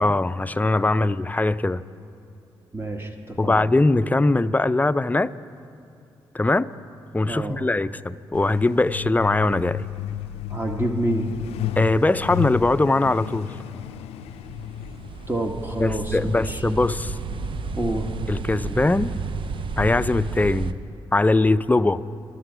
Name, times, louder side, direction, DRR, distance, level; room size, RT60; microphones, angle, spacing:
voice 1, 0.0-1.8 3.4-5.3 6.3-6.7 7.1-9.9 11.8-13.5 15.8-17.2 18.3-19.1 19.8-20.8 21.1-22.0, left 2 dB, 15° left, 14 dB, 0.5 m, -21 dB
voice 2, 2.7-3.6 7.3-7.6 10.5-11.3 15.3-16.6 17.7-18.1, right 1 dB, 20° right, 3 dB, 1.3 m, -28 dB
Truck, 8.3-20.6, left 10 dB, 85° left, 0.4 m, -34 dB
sound 1, 14.3-20.7, right 5 dB, 55° right, 0.7 m, -32 dB
24.0 x 8.3 x 5.0 m, 2.7 s
supercardioid pair, 45°, 10 cm